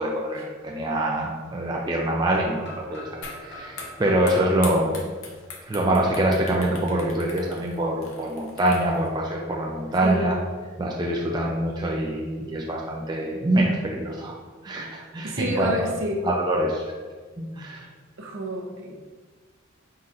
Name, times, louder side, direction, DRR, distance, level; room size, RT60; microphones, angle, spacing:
voice 1, 0.0-5.0 5.7-10.4 10.8-14.3 14.6-15.9 16.2-16.8 17.4-17.9, right 1 dB, 20° right, -2 dB, 0.3 m, -25 dB
sound 1, 2.3-6.2, left 1 dB, 55° left, 0.9 m, -42 dB
sound 2, 3.2-3.4 3.7-9.1, left 4 dB, 85° left, 0.7 m, -40 dB
voice 2, 10.0-10.4 15.2-16.3 18.2-19.0, equal, 65° right, 0 dB, 0.7 m, -29 dB
4.3 x 3.9 x 2.5 m, 1.5 s
head